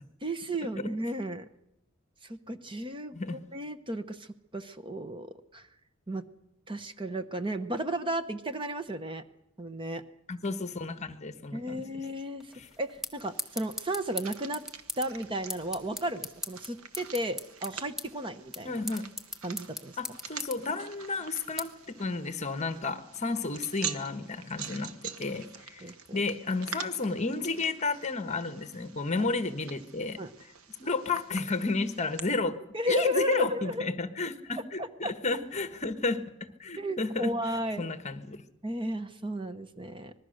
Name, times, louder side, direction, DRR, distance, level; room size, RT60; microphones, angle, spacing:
voice 1, 0.2-1.5 2.2-4.3 4.5-5.7 6.1-6.2 6.7-9.2 9.6-10.0 11.5-14.6 15.0-18.8 19.4-20.0 25.8-26.2 29.2-29.3 30.2-30.3 32.7-33.9 34.8-35.1 36.8-37.9 38.6-40.1, equal, 25° right, 10 dB, 0.9 m, -34 dB
voice 2, 10.3-12.0 12.5-12.7 18.6-19.1 20.0-25.8 26.1-30.2 30.8-32.6 32.9-37.3 37.8-38.4, left 3 dB, 35° left, 10 dB, 1.3 m, -32 dB
sound 1, 12.4-22.9, left 1 dB, ahead, 1.2 m, -42 dB
sound 2, 13.2-32.2, right 7 dB, 80° right, 1.4 m, -45 dB
25.5 x 20.5 x 6.6 m, 0.84 s
head